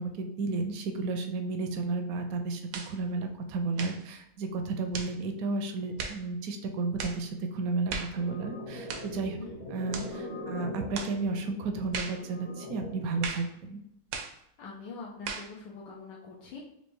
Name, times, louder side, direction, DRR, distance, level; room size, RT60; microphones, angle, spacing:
voice 1, 0.0-2.6 2.9-9.4 9.7-13.8, right 3 dB, 70° right, 5 dB, 0.8 m, -32 dB
sound 1, 2.7-3.0 3.7-4.0 4.9-5.2 6.0-6.2 7.0-7.2 7.9-8.2 8.9-9.1 9.9-10.1 10.9-11.2 11.9-12.2 13.2-13.5 14.1-14.4 15.3-15.5, right 5 dB, 90° right, 1.3 m, -37 dB
sound 2, 8.1-13.1, left 1 dB, 50° left, 0.9 m, -41 dB
voice 2, 14.6-16.6, left 4 dB, 85° left, -4 dB, 1.3 m, -44 dB
4.4 x 2.6 x 3.0 m, 0.77 s
omnidirectional pair, 1.9 m